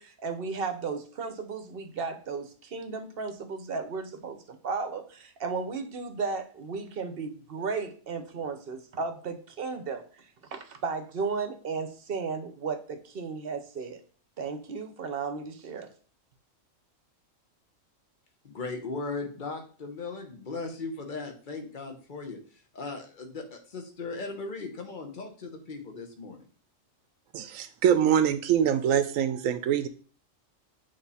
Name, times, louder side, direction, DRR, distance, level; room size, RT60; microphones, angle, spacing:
voice 1, 0.0-14.0 14.4-15.9, right 4 dB, 55° right, 8 dB, 0.9 m, -34 dB
voice 2, 18.4-22.4 22.7-26.5, left 3 dB, 40° left, 4 dB, 1.2 m, -37 dB
voice 3, 27.3-29.9, right 9 dB, 90° right, 11 dB, 1.0 m, -24 dB
8.1 x 3.3 x 4.1 m, 0.42 s
omnidirectional pair, 1.3 m